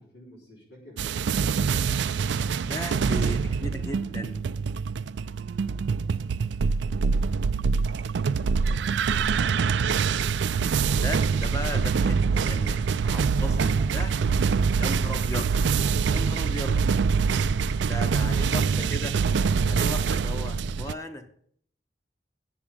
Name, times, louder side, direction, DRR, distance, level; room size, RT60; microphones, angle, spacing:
voice 1, 0.0-1.7 3.2-4.8 7.3-10.6 13.2-14.1 14.3-14.6 17.3-17.8 18.1-19.0, left 1 dB, 85° left, -4 dB, 4.2 m, -49 dB
sound 1, 1.0-20.9, right 5 dB, 80° right, 0.4 m, -25 dB
voice 2, 2.6-4.4 10.9-12.2 12.4-14.1 14.8-15.6 16.1-16.8 17.9-19.1 19.7-21.3, left 1 dB, 15° left, 7 dB, 1.0 m, -36 dB
8.6 x 7.0 x 8.7 m, 0.64 s
head